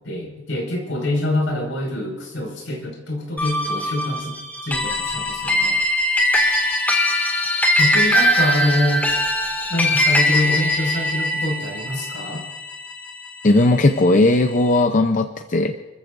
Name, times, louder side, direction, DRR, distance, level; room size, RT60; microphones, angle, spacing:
voice 1, 0.0-4.3 4.6-5.8 7.8-9.0 9.7-12.4, left 1 dB, 80° left, 0 dB, 5.3 m, -25 dB
sound 1, 3.4-14.0, left 1 dB, 10° left, 2.0 m, -21 dB
voice 2, 13.4-15.8, left 2 dB, 40° left, 6 dB, 0.6 m, -17 dB
29.5 x 14.5 x 2.6 m, 1.2 s
head